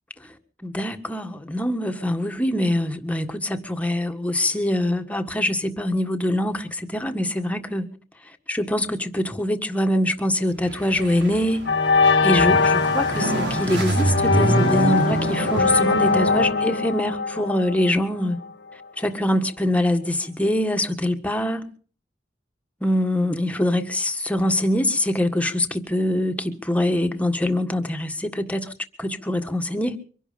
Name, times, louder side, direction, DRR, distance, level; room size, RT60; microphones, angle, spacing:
voice 1, 0.6-7.9 8.5-11.6 12.2-18.4 19.0-21.7 22.8-28.7 29.0-30.0, left 1 dB, 10° left, 1.6 m, -24 dB
sound 1, 10.6-16.5, right 1 dB, 90° right, 5.5 m, -26 dB
sound 2, 10.9-11.2 11.7-18.5, left 4 dB, 85° left, 1.5 m, -22 dB
24.0 x 11.0 x 5.3 m
head